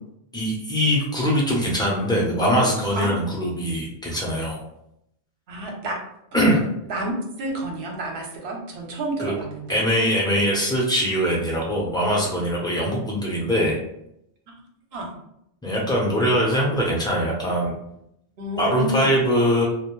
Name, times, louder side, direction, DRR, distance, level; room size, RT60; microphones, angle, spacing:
voice 1, 0.3-4.6 6.3-6.6 9.2-9.3 9.7-13.8 15.6-17.7 18.6-19.6, equal, 5° left, -3 dB, 0.5 m, -22 dB
voice 2, 5.5-6.0 6.4-6.6 6.9-9.8 14.5-14.6 14.9-15.1 18.4-19.2, right 1 dB, 70° right, 1 dB, 0.9 m, -30 dB
2.5 x 2.1 x 2.9 m, 0.79 s
omnidirectional pair, 1.1 m